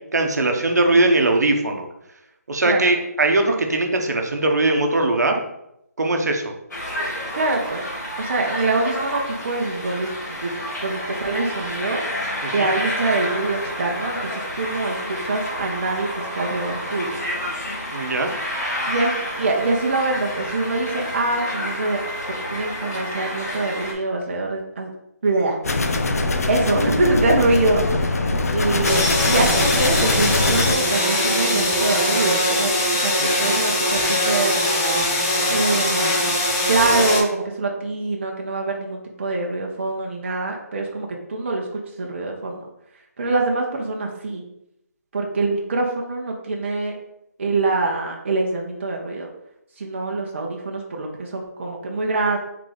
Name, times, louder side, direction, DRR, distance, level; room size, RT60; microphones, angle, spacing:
voice 1, 0.1-1.9 2.5-5.4 6.0-6.5 12.4-12.7 17.9-18.3, right 2 dB, 75° right, 3 dB, 0.9 m, -20 dB
sound 1, 6.7-23.9, equal, 85° left, 1.6 m, -29 dB
voice 2, 7.3-7.9 8.2-10.5 10.8-12.0 12.5-17.2 18.9-22.0 22.5-24.9 25.2-25.6 26.5-27.8 28.5-34.6 35.5-36.4 36.7-42.7 43.2-44.4 45.1-46.9 47.4-49.3 49.8-52.4, right 2 dB, 45° right, 0 dB, 0.7 m, -24 dB
sound 2, 25.6-30.7, left 2 dB, 65° left, 0.6 m, -22 dB
sound 3, 28.8-37.2, left 1 dB, 10° left, 0.3 m, -21 dB
3.8 x 3.2 x 3.9 m, 0.81 s
hypercardioid pair, 170°, 9 cm